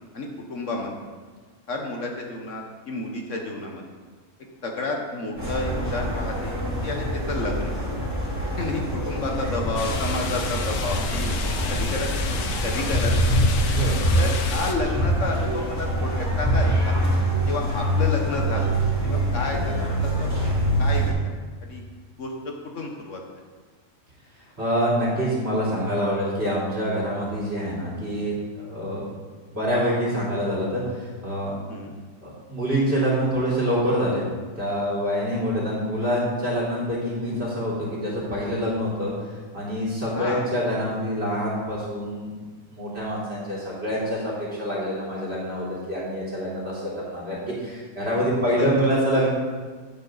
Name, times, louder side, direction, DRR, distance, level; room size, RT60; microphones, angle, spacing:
voice 1, 0.1-0.9 1.7-3.8 4.6-6.6 6.8-7.7 8.6-11.4 11.7-12.1 12.6-13.1 14.1-16.9 17.5-18.7 19.0-20.4 20.8-21.3 21.6-21.8 22.2-22.3 22.7-23.2 31.7-32.0 40.1-40.5 48.6-48.7, left 2 dB, 55° left, 1 dB, 1.4 m, -30 dB
sound 1, 5.4-21.1, equal, 10° right, 3.2 m, -24 dB
sound 2, 9.8-14.7, left 5 dB, 80° left, 1.4 m, -32 dB
voice 2, 13.6-14.0 24.6-29.0 29.5-31.5 32.2-34.2 34.6-39.1 39.5-42.3 42.7-49.3, equal, 45° right, -6 dB, 4.0 m, -26 dB
10.5 x 8.7 x 4.0 m, 1.4 s
omnidirectional pair, 1.6 m